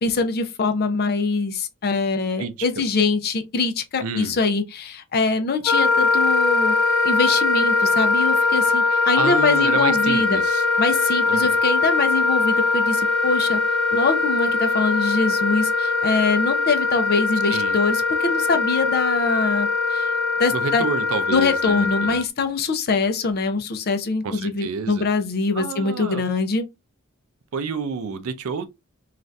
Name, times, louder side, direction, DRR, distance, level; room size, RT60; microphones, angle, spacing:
voice 1, 0.0-6.8 7.0-10.4 10.8-13.6 13.9-20.1 20.4-20.9 21.3-26.6, left 4 dB, 45° left, 0.5 m, -23 dB
voice 2, 2.4-2.7 4.0-4.4 9.2-10.6 11.3-11.5 17.5-17.8 20.5-22.2 24.2-25.1 25.5-26.2 27.5-28.6, right 5 dB, 70° right, 0.5 m, -29 dB
Wind instrument woodwind instrument, 5.6-22.2, left 3 dB, ahead, 1.1 m, -21 dB
2.6 x 2.4 x 3.2 m
head